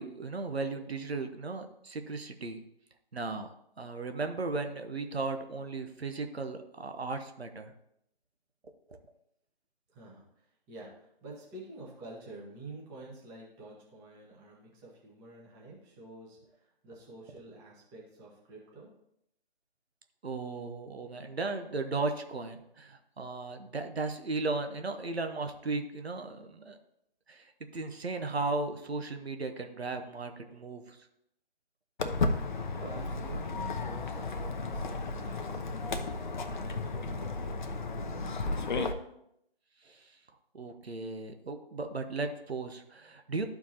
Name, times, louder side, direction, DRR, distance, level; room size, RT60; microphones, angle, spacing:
voice 1, 0.0-2.6 3.1-3.5 3.8-7.7 8.9-9.0 20.2-26.8 27.3-31.0 39.8-40.1 40.5-43.4, right 3 dB, 90° right, 7 dB, 1.0 m, -36 dB
voice 2, 9.9-18.9 32.7-38.8, right 2 dB, 10° right, -4 dB, 1.1 m, -49 dB
Walk footsteps, 32.0-38.9, left 3 dB, 50° left, 0.7 m, -33 dB
12.5 x 4.7 x 2.8 m, 0.77 s
figure-of-eight pair, 155°, 31 cm